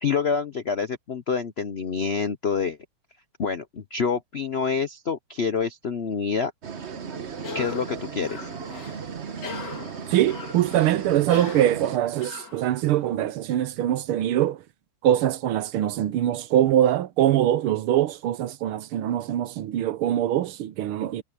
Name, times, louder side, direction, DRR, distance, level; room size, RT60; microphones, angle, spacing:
voice 1, 0.0-2.8 3.4-6.5 7.5-8.4, left 5 dB, 70° left, 0.6 m, -27 dB
sound 1, 6.6-12.0, right 6 dB, 40° right, 1.1 m, -36 dB
Cough, 7.4-13.1, left 5 dB, 55° left, 3.4 m, -41 dB
voice 2, 10.1-14.6 15.0-21.2, right 12 dB, 85° right, 1.7 m, -23 dB
omnidirectional pair, 2.3 m